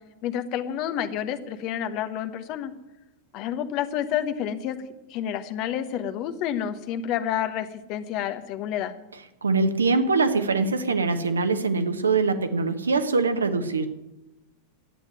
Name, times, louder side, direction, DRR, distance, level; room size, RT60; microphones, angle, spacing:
voice 1, 0.2-2.7 3.3-4.8 5.1-8.9, left 10 dB, 40° left, 9 dB, 1.1 m, -29 dB
voice 2, 9.4-13.9, right 4 dB, 75° right, 9 dB, 1.2 m, -23 dB
11.5 x 9.1 x 9.2 m, 1.0 s
figure-of-eight pair, 90°, 0 cm